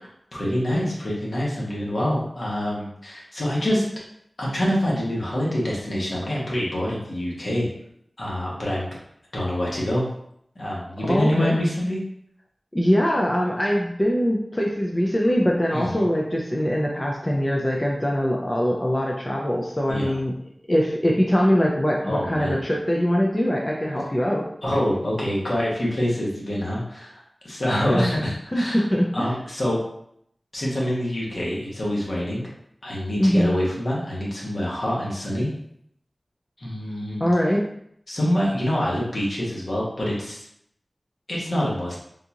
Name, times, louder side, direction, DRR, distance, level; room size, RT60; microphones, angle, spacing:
voice 1, 0.3-3.8 4.4-7.7 8.2-8.9 9.3-10.1 10.5-12.0 15.7-16.0 19.9-20.2 22.0-22.6 24.6-27.2 27.4-28.9 29.1-29.8 30.5-32.4 32.8-35.5 36.6-37.3 38.1-40.4 41.3-42.0, equal, 65° left, -5 dB, 1.2 m, -26 dB
voice 2, 11.0-11.5 12.7-20.3 20.7-24.5 27.9-28.1 28.5-29.3 33.2-33.5 37.2-37.6, equal, 20° left, -2 dB, 0.4 m, -22 dB
3.7 x 2.4 x 2.8 m, 0.71 s
wide cardioid pair, 70°, 0 cm